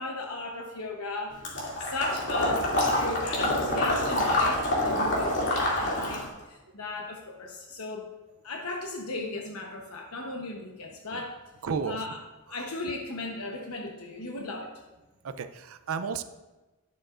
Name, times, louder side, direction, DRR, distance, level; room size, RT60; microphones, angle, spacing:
voice 1, 0.0-8.1 8.4-11.4 11.9-12.2 12.5-14.7, left 2 dB, 85° left, 1 dB, 1.0 m, -36 dB
Water / Liquid, 1.4-6.3, left 1 dB, 55° left, 2.5 m, -26 dB
voice 2, 11.6-12.0 12.5-12.6 15.2-16.2, right 5 dB, 70° right, 10 dB, 0.5 m, -33 dB
11.5 x 10.0 x 2.5 m, 1.1 s
head